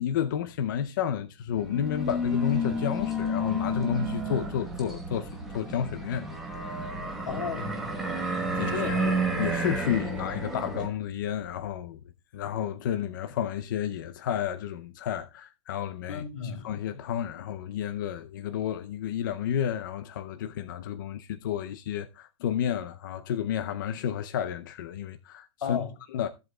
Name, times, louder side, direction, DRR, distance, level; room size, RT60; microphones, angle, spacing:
voice 1, 0.0-6.3 6.6-6.9 8.6-8.7 9.4-12.0 12.3-16.2 16.6-25.8 26.1-26.3, left 9 dB, 40° left, 0.6 m, -31 dB
sound 1, 1.5-10.9, equal, ahead, 1.1 m, -31 dB
voice 2, 7.3-7.8 8.5-9.1 10.1-10.2 16.1-16.7 25.6-26.0, left 6 dB, 90° left, 3.0 m, -34 dB
15.5 x 7.9 x 2.3 m
hypercardioid pair, 175°, 17 cm